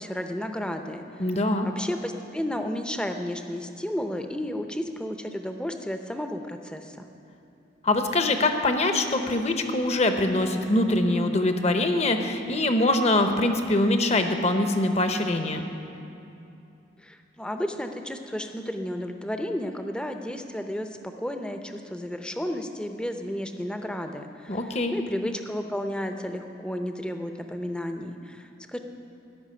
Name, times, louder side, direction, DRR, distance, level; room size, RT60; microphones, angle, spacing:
voice 1, 0.0-1.0 1.6-7.0 17.0-28.8, equal, 5° left, 6 dB, 0.6 m, -32 dB
voice 2, 1.2-1.7 7.8-15.6 24.5-24.9, left 2 dB, 35° left, 6 dB, 0.8 m, -23 dB
13.5 x 6.1 x 9.9 m, 2.8 s
head